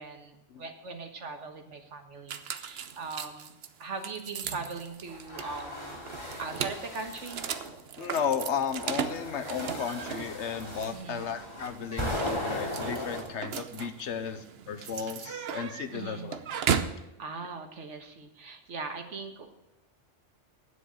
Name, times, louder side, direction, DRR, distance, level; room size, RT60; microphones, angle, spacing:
voice 1, 0.0-3.5 3.8-6.0 6.4-7.4 10.9-11.3 15.9-16.3 17.2-19.5, right 4 dB, 75° right, 6 dB, 1.7 m, -40 dB
sound 1, 2.3-17.0, right 7 dB, 60° right, 0.9 m, -37 dB
sound 2, 5.1-7.7 8.4-13.2, left 1 dB, 25° left, 2.8 m, -37 dB
Frog / Percussion / Wood, 6.1-7.3 9.3-10.4, right 2 dB, 35° right, 2.8 m, -55 dB
voice 2, 8.0-16.4, left 7 dB, 70° left, 10 dB, 1.2 m, -34 dB
9.7 x 8.0 x 7.6 m, 0.91 s
omnidirectional pair, 1.2 m